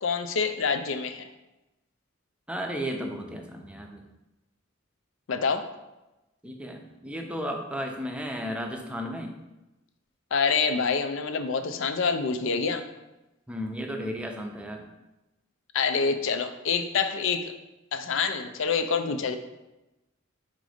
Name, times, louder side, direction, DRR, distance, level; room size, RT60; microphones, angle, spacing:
voice 1, 0.0-1.3 5.3-5.7 10.3-12.8 15.7-17.5 17.9-19.4, left 5 dB, 65° left, 9 dB, 0.5 m, -26 dB
voice 2, 2.5-4.0 6.4-9.3 13.5-14.9, equal, 5° right, 2 dB, 0.6 m, -34 dB
5.1 x 3.9 x 4.9 m, 1.0 s
head